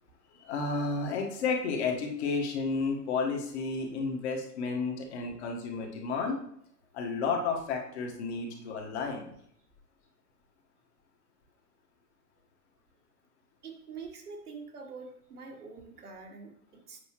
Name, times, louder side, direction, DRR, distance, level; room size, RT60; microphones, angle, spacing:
voice 1, 0.3-6.4 6.9-9.3, left 4 dB, 45° left, 1 dB, 1.6 m, -32 dB
voice 2, 13.6-17.0, right 4 dB, 70° right, 2 dB, 1.7 m, -45 dB
8.3 x 5.4 x 3.1 m, 0.69 s
figure-of-eight pair, 115°, 48 cm